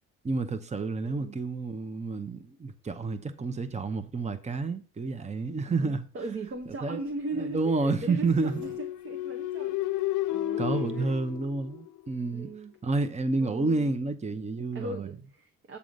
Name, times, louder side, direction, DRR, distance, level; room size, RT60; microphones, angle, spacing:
voice 1, 0.2-6.1 6.8-7.0 7.4-8.6 10.6-12.5 12.8-15.1, right 3 dB, 20° right, 0.8 m, -29 dB
voice 2, 1.0-1.4 5.7-9.9 10.3-11.2 12.3-12.7 13.4-13.9 14.7-15.8, right 2 dB, 45° right, 1.1 m, -39 dB
Zipper (clothing), 5.7-10.0 10.5-10.6 10.7-10.8 11.1-11.4, right 4 dB, 70° right, 1.3 m, -55 dB
sound 1, 8.4-12.2, left 15 dB, 90° left, 0.5 m, -32 dB
8.4 x 3.8 x 6.4 m
cardioid pair, 90°, 30 cm